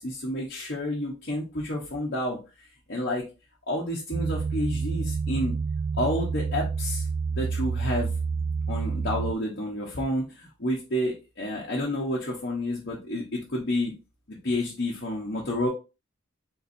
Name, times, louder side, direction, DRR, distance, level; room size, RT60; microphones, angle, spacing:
voice 1, 0.0-2.4 2.9-3.2 3.7-5.6 6.0-7.1 7.3-8.1 8.7-13.9 14.3-15.7, left 1 dB, 50° left, -3 dB, 1.0 m, -30 dB
sound 1, 4.1-9.3, right 5 dB, 50° right, 0.3 m, -28 dB
4.2 x 3.9 x 2.7 m, 0.30 s
head